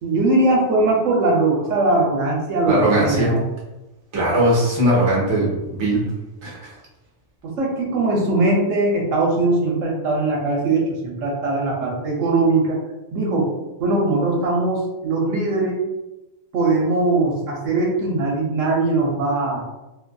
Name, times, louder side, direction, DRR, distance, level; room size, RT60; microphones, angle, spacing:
voice 1, 0.0-3.4 7.4-12.8 13.1-13.5 13.8-15.8 16.5-19.6, right 2 dB, 75° right, -2 dB, 0.9 m, -20 dB
voice 2, 2.7-3.3 4.1-6.0 6.4-6.7, right 1 dB, 25° right, -4 dB, 0.6 m, -19 dB
2.6 x 2.4 x 2.2 m, 1.0 s
omnidirectional pair, 1.4 m